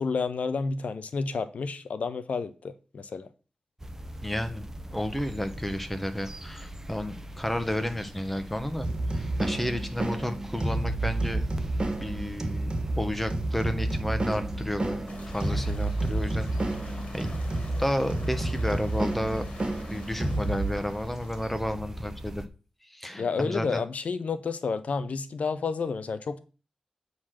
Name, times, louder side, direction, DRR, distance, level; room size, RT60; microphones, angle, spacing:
voice 1, 0.0-3.3 23.2-26.4, left 4 dB, 80° left, 0.7 m, -30 dB
sound 1, 3.8-22.5, right 1 dB, 20° right, 1.0 m, -42 dB
voice 2, 4.2-4.6 4.9-11.4 12.0-12.7 13.0-16.5 16.8-17.3 17.8-19.4 19.9-22.4 22.9-23.8, equal, 5° left, 1.3 m, -32 dB
sound 2, 8.8-20.7, right 2 dB, 45° right, 1.8 m, -30 dB
sound 3, 15.1-21.5, left 2 dB, 65° left, 2.4 m, -48 dB
8.5 x 4.0 x 6.4 m
wide cardioid pair, 70°, 2 cm